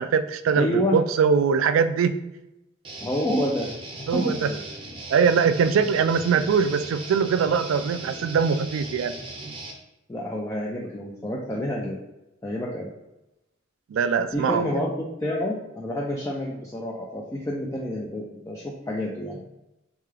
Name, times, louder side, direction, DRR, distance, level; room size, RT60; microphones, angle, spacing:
voice 1, 0.0-2.2 4.1-4.5 5.1-9.1 13.9-14.8, right 6 dB, 75° right, 11 dB, 0.3 m, -22 dB
voice 2, 0.5-1.0 3.0-3.7 4.0-4.6 10.1-12.0 12.4-12.9 14.3-19.4, left 1 dB, 15° left, -3 dB, 0.4 m, -28 dB
Guitar, 2.8-9.7, right 2 dB, 25° right, 0.6 m, -38 dB
3.6 x 3.2 x 3.3 m, 0.94 s
head